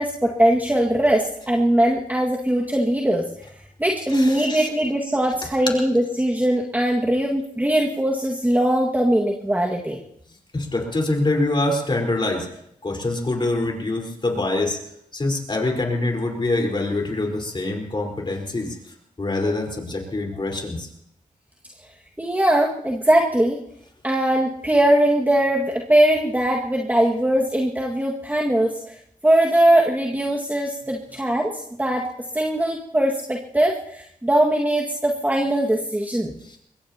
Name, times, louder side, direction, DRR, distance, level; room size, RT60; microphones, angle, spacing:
voice 1, 0.0-3.2 3.8-10.0 22.2-23.6 24.0-29.0 29.2-32.0 32.3-36.3, right 1 dB, 10° right, -1 dB, 2.0 m, -20 dB
voice 2, 4.1-4.7 10.5-12.5 12.8-14.8 15.1-18.8 19.2-20.9 36.4-36.6, left 2 dB, 35° left, 1 dB, 4.5 m, -25 dB
23.5 x 21.0 x 2.9 m, 0.72 s
cardioid pair, 65°, 14 cm